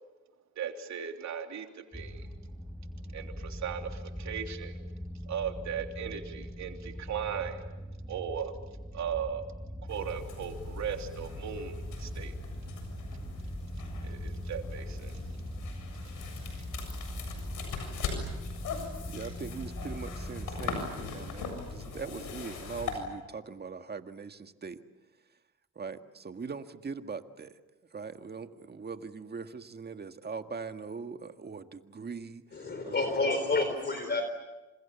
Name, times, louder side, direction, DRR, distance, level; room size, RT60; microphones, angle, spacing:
voice 1, 0.6-2.3 3.1-4.8 5.3-7.6 8.1-8.5 8.9-9.4 9.9-12.3 14.0-15.1, right 8 dB, 65° right, 3.3 m, -37 dB
sound 1, 1.9-20.8, equal, ahead, 1.6 m, -41 dB
sound 2, 9.9-23.0, left 5 dB, 80° left, 7.5 m, -40 dB
voice 2, 19.1-24.8 25.7-27.5 27.9-32.9, right 5 dB, 35° right, 1.8 m, -41 dB
voice 3, 32.5-34.2, left 3 dB, 35° left, 3.9 m, -29 dB
28.5 x 27.0 x 7.1 m
cardioid pair, 90°, 30 cm